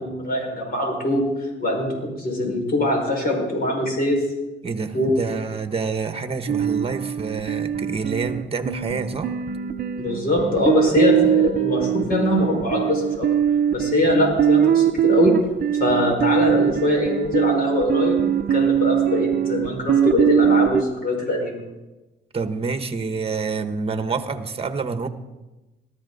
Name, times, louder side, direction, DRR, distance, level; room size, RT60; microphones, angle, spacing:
voice 1, 0.0-4.2 4.9-5.1 10.0-13.3 13.7-15.4 15.8-21.6, left 1 dB, 50° left, 0 dB, 5.3 m, -22 dB
voice 2, 4.6-9.3 22.3-25.1, right 4 dB, 30° right, 9 dB, 1.3 m, -27 dB
sound 1, 6.5-20.8, right 9 dB, 50° right, 0.8 m, -21 dB
19.0 x 13.5 x 4.1 m, 1.1 s
cardioid pair, 90°, 20 cm